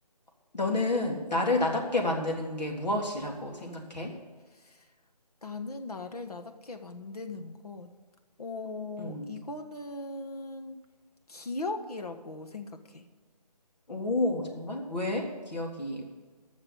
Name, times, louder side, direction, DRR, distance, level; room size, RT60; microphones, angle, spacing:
voice 1, 0.5-4.1 9.0-9.3 13.9-16.1, left 2 dB, 90° left, 0 dB, 3.5 m, -30 dB
voice 2, 4.5-4.8 5.4-7.9 8.4-10.8 11.3-13.0, left 3 dB, 65° left, 6 dB, 1.6 m, -39 dB
13.5 x 6.7 x 8.8 m, 1.4 s
figure-of-eight pair, 175°, 21 cm